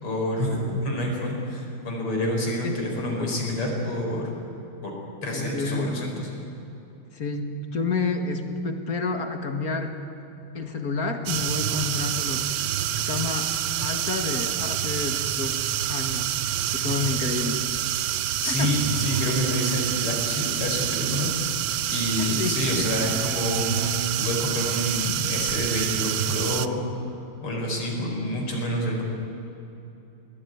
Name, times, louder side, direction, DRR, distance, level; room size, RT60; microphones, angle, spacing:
voice 1, 0.0-4.3 4.8-4.9 5.2-6.3 18.4-21.3 21.9-27.1 27.4-29.0, left 1 dB, 85° left, 0 dB, 5.4 m, -28 dB
voice 2, 2.6-3.4 5.3-6.1 7.1-10.0 10.5-12.5 13.0-13.5 13.8-15.6 15.9-16.3 16.7-17.6 18.4-18.7 21.9-23.0, left 3 dB, 45° left, 6 dB, 2.0 m, -30 dB
sound 1, 11.3-26.7, right 11 dB, 70° right, 1.0 m, -27 dB
22.0 x 18.5 x 9.4 m, 2.9 s
omnidirectional pair, 2.4 m